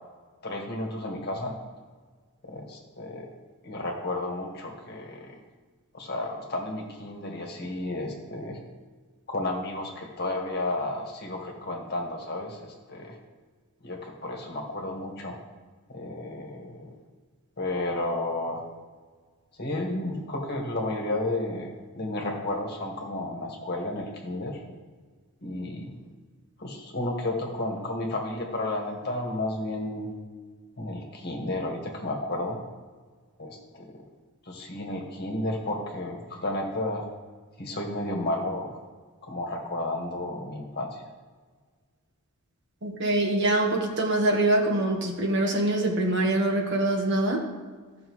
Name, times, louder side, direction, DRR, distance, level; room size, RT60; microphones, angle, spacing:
voice 1, 0.4-1.5 2.4-3.3 3.6-5.3 5.9-8.6 9.3-12.6 12.9-13.1 13.8-15.4 15.9-16.9 17.6-18.7 19.6-24.6 25.4-26.0 26.6-30.1 30.8-32.6 33.4-34.0 34.5-37.1 37.6-38.8 39.2-40.9, left 2 dB, 45° left, 0 dB, 1.6 m, -32 dB
voice 2, 42.8-47.4, right 1 dB, 50° right, 1 dB, 1.4 m, -24 dB
15.0 x 6.3 x 3.2 m, 1.5 s
head